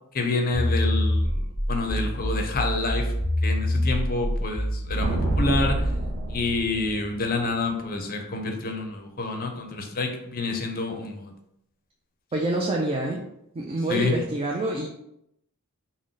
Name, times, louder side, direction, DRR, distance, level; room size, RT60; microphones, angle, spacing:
voice 1, 0.1-1.4 1.7-3.1 3.4-5.9 6.3-11.3 13.9-14.1, left 3 dB, 40° left, 4 dB, 0.5 m, -28 dB
sound 1, 0.5-6.0, equal, 10° left, 0.8 m, -26 dB
sound 2, 5.0-7.7, right 1 dB, 65° right, 0.6 m, -28 dB
voice 2, 12.3-13.2 13.5-14.9, right 2 dB, 25° right, -1 dB, 0.4 m, -26 dB
3.7 x 2.1 x 3.7 m, 0.78 s
head